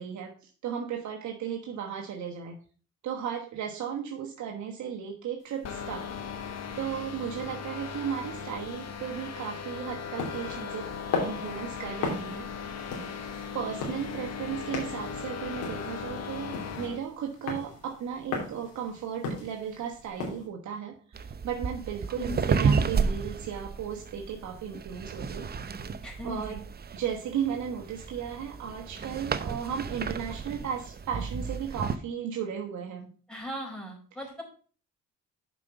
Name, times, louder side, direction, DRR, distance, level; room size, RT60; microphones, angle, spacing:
voice 1, 0.0-2.6 3.0-6.1 6.8-10.9 11.2-12.5 12.8-13.0 13.5-25.5 26.2-26.6 26.9-33.1, right 8 dB, 70° right, 1 dB, 1.3 m, -35 dB
sound 1, 5.6-17.0, left 6 dB, 60° left, 1.4 m, -38 dB
sound 2, 10.2-20.5, left 4 dB, 85° left, 3.1 m, -37 dB
sound 3, 21.1-32.0, right 5 dB, 30° right, 0.6 m, -32 dB
voice 2, 26.0-26.6 33.3-34.4, left 1 dB, 5° left, 0 dB, 4.3 m, -38 dB
7.5 x 5.3 x 5.8 m, 0.40 s
cardioid pair, 90°, 30 cm